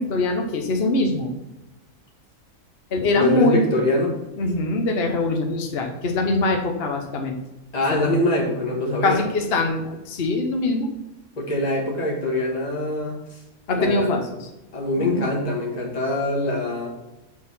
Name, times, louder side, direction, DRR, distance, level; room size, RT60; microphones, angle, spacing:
voice 1, 0.0-1.3 2.9-3.7 4.4-7.4 7.9-8.1 9.0-10.9 13.7-14.5 15.0-15.2, left 2 dB, 50° left, 3 dB, 1.1 m, -23 dB
voice 2, 3.2-4.2 7.7-9.2 11.4-13.4 13.7-14.2 14.7-16.9, left 1 dB, 30° left, -2 dB, 1.6 m, -24 dB
6.5 x 4.3 x 5.5 m, 0.99 s
omnidirectional pair, 1.5 m